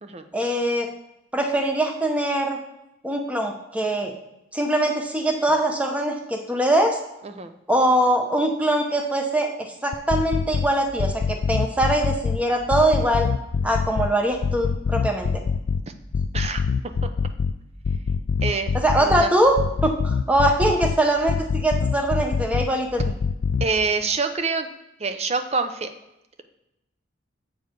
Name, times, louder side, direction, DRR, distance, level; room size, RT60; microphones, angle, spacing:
voice 1, 0.3-0.9 1.3-2.6 3.0-4.1 4.5-7.0 7.7-13.3 13.6-15.3 18.7-23.1, right 1 dB, 5° right, 3 dB, 0.9 m, -22 dB
sound 1, 9.9-10.7 11.0-12.4 12.7-14.1 14.4-15.8 16.1-17.5 17.8-19.2 19.6-21.0 21.3-22.7 23.0-23.7, left 5 dB, 60° left, 0.4 m, -24 dB
voice 2, 18.4-18.7 19.0-19.3 23.6-24.7 25.0-25.9, right 4 dB, 30° right, 8 dB, 0.6 m, -26 dB
7.9 x 4.7 x 5.2 m, 0.89 s
head